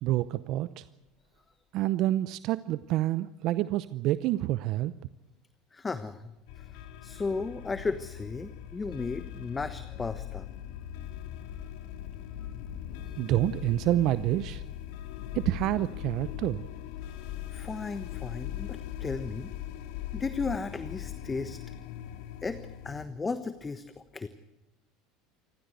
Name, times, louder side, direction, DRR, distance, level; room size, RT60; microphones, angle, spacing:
voice 1, 0.0-0.8 1.7-4.9 13.2-14.6 15.3-16.7, right 14 dB, 60° right, 15 dB, 0.7 m, -28 dB
voice 2, 5.7-10.5 17.0-17.1 17.5-19.5 20.1-21.6 22.4-22.6 22.8-24.3, left 4 dB, 20° left, 11 dB, 1.2 m, -35 dB
sound 1, 6.5-23.1, left 11 dB, 70° left, 2.3 m, -40 dB
28.5 x 15.0 x 8.1 m, 0.98 s
hypercardioid pair, 85°, 0 cm